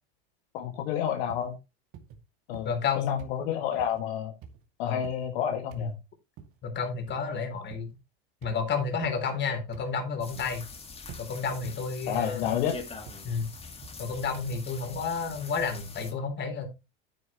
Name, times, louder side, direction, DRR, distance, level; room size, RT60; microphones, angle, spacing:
voice 1, 0.5-1.6 2.5-2.7 3.0-4.3 4.8-5.9 12.1-12.8, left 9 dB, 70° left, 2.1 m, -30 dB
Footsteps Walking On Wooden Floor Medium Pace, 1.3-1.5 1.9-2.2 2.5-2.9 3.2-3.4 3.8-4.0 4.4-4.6 5.0-5.3 5.7-5.9 6.4-6.6 7.1-7.3 7.7-8.0 8.4-8.6 9.0-9.2 9.7-10.0 10.4-10.7 11.1-11.3 11.6-11.9 12.4-12.6 13.1-13.3 13.8-14.1 14.5-14.6, right 7 dB, 45° right, 2.4 m, -48 dB
voice 2, 2.6-3.2 4.8-5.0 5.8-5.9 6.6-7.9 8.4-10.6 11.2-12.5 13.2-13.5 14.0-16.7, left 5 dB, 35° left, 3.6 m, -31 dB
sound 1, 10.2-16.1, left 4 dB, 20° left, 2.1 m, -44 dB
9.5 x 9.4 x 3.1 m
supercardioid pair, 115°, 31 cm